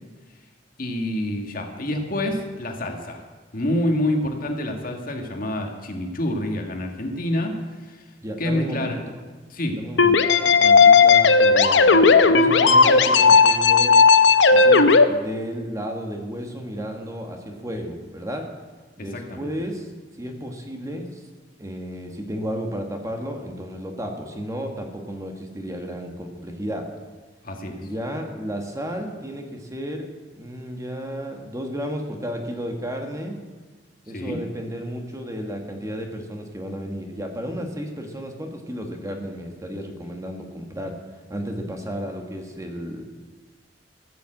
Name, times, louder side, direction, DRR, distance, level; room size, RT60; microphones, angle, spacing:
voice 1, 0.8-3.2 3.5-7.5 7.9-8.0 8.4-9.0 9.5-9.8 19.1-19.5 27.4-27.8 34.1-34.4, left 1 dB, 50° left, 3 dB, 1.7 m, -27 dB
voice 2, 8.2-8.9 9.8-14.0 14.5-18.5 19.0-19.9 20.2-21.2 21.6-26.9 27.8-30.1 30.3-33.4 34.1-41.0 41.3-43.0, equal, 20° right, 3 dB, 1.5 m, -33 dB
sound 1, 10.0-15.0, left 4 dB, 70° left, 0.8 m, -14 dB
15.0 x 6.8 x 7.8 m, 1.3 s
head